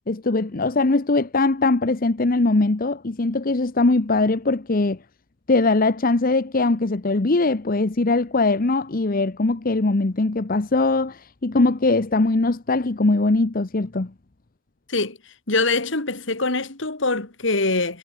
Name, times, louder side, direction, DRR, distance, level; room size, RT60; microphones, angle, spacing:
voice 1, 0.1-5.0 5.5-14.1, left 3 dB, 45° left, 0.9 m, -21 dB
voice 2, 15.5-18.0, left 3 dB, 65° left, 2.9 m, -23 dB
head